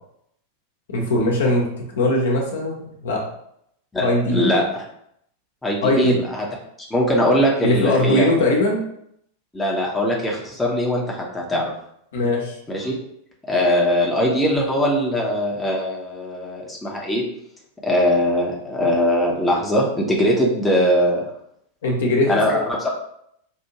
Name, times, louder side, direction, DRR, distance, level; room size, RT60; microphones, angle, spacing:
voice 1, 0.9-3.2 4.0-4.5 5.8-6.2 7.6-8.8 12.1-12.6 21.8-22.4, left 1 dB, 60° left, -1 dB, 0.9 m, -20 dB
voice 2, 4.3-4.8 5.6-6.5 6.9-8.3 9.5-11.6 12.7-12.9 13.5-17.2 17.8-21.2 22.3-22.9, equal, 10° left, -2 dB, 0.8 m, -21 dB
4.6 x 2.6 x 2.9 m, 0.74 s
figure-of-eight pair, 90°, 0 cm